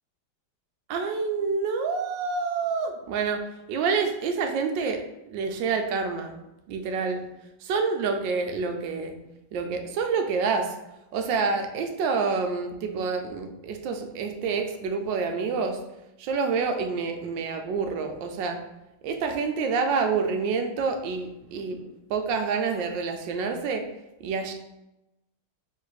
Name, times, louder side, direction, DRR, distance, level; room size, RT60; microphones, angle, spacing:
voice 1, 0.9-3.4 3.7-6.3 6.7-7.2 7.6-9.2 9.5-10.8 11.1-15.8 16.2-18.6 19.0-23.9 24.2-24.5, right 5 dB, 75° right, 5 dB, 1.2 m, -28 dB
3.3 x 3.2 x 4.7 m, 0.92 s
omnidirectional pair, 2.3 m